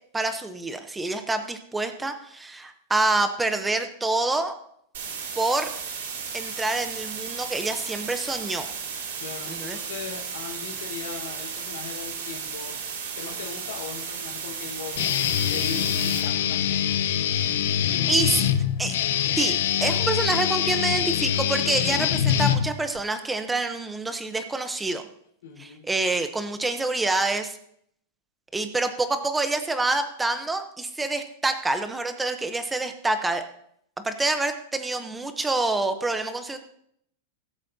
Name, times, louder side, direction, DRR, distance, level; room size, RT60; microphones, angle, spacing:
voice 1, 0.1-4.5 5.3-5.7 6.3-8.7 9.5-9.8 18.1-18.5 18.8-19.0 19.4-25.0 25.6-27.6 28.5-33.4 34.0-36.6, right 2 dB, 5° right, 8 dB, 0.7 m, -27 dB
sound 1, 4.9-16.2, right 6 dB, 70° right, 3.3 m, -34 dB
voice 2, 9.2-16.8 25.4-25.8, left 6 dB, 90° left, -2 dB, 3.9 m, -39 dB
Guitar, 15.0-23.0, left 10 dB, 65° left, 0.7 m, -24 dB
21.0 x 8.1 x 2.7 m, 0.69 s
supercardioid pair, 180°, 0 cm